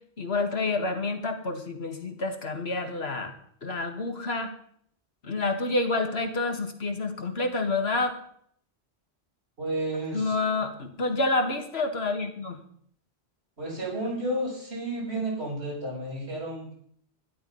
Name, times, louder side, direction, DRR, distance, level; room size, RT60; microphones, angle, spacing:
voice 1, 0.2-3.3 3.6-4.5 5.2-8.1 10.1-12.6, left 3 dB, 70° left, 5 dB, 2.0 m, -28 dB
voice 2, 9.6-10.7 13.6-16.7, right 1 dB, 70° right, -3 dB, 5.8 m, -32 dB
12.0 x 11.5 x 5.5 m, 0.64 s
omnidirectional pair, 1.1 m